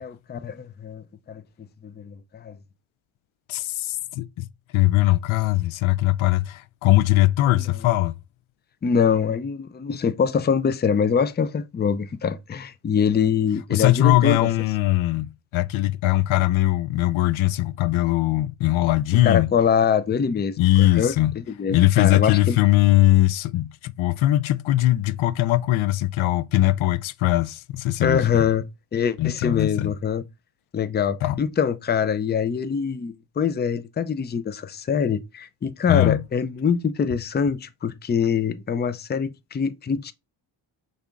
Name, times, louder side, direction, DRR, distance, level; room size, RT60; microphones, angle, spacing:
voice 1, 0.0-1.4 1.8-2.6 7.5-7.6 8.8-14.4 19.2-22.6 28.0-28.6 28.9-30.2 30.7-40.1, left 7 dB, 20° left, 0.4 m, -24 dB
voice 2, 3.5-4.5 4.7-8.1 13.7-19.5 20.6-21.3 21.7-28.5 29.2-29.9 31.2-31.4 35.9-36.2, left 16 dB, 75° left, 0.5 m, -20 dB
5.5 x 3.5 x 2.4 m
cardioid pair, 85°, 49 cm